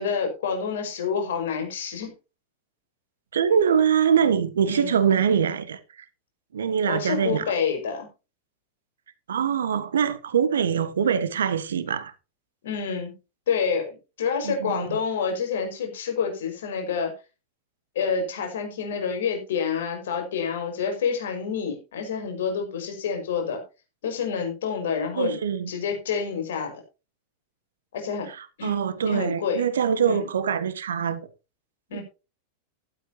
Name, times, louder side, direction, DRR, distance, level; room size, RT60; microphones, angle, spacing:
voice 1, 0.0-2.1 4.7-5.0 6.8-8.1 12.6-13.1 13.5-13.9 14.2-17.1 18.0-23.6 24.0-25.3 25.7-26.7 27.9-28.3 28.6-28.7 29.0-29.6 30.1-30.3 31.9-32.0, left 6 dB, 60° left, 5.5 m, -28 dB
voice 2, 3.3-6.0 6.5-7.5 9.3-12.1 14.4-15.0 25.1-25.7 28.3-31.3 31.9-32.0, right 7 dB, 65° right, 1.5 m, -24 dB
14.0 x 12.0 x 2.9 m
figure-of-eight pair, 90°, 0 cm